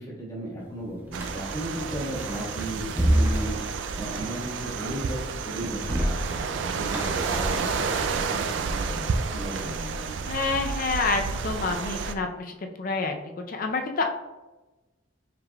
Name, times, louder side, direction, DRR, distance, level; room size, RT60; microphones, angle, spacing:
voice 1, 0.0-3.6 3.9-5.2 5.4-7.9 8.3-9.0 9.3-10.2, right 1 dB, 20° left, -4 dB, 1.2 m, -35 dB
sound 1, 1.0-4.8 5.4-8.5, right 1 dB, 10° right, 0.5 m, -29 dB
sound 2, 1.1-12.1, right 5 dB, 70° right, 0.3 m, -31 dB
voice 2, 10.2-13.1 13.5-14.2, left 3 dB, 45° left, 4 dB, 0.5 m, -28 dB
4.9 x 3.5 x 2.2 m, 1.1 s
head